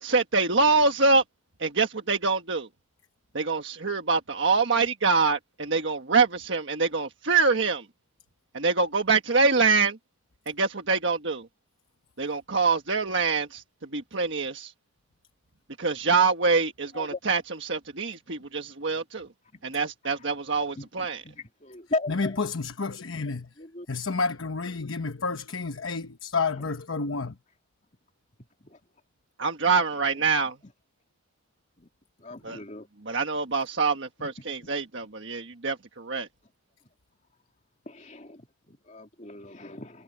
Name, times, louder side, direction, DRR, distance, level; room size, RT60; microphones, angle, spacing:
voice 1, 0.0-1.2 1.6-2.7 3.3-7.8 8.5-10.0 10.5-11.5 12.2-13.6 13.9-14.7 15.8-19.3 19.6-21.2 29.4-30.5 32.4-32.6 33.1-36.3, right 4 dB, 65° right, 1.4 m, -25 dB
voice 2, 20.7-22.4 23.6-23.9 26.6-26.7 28.6-28.8 30.6-30.7 31.8-31.9 32.2-32.9 34.2-34.7 37.9-40.0, left 2 dB, 35° left, 2.8 m, -38 dB
voice 3, 22.1-23.5 23.9-27.3, left 4 dB, 90° left, 1.0 m, -30 dB
head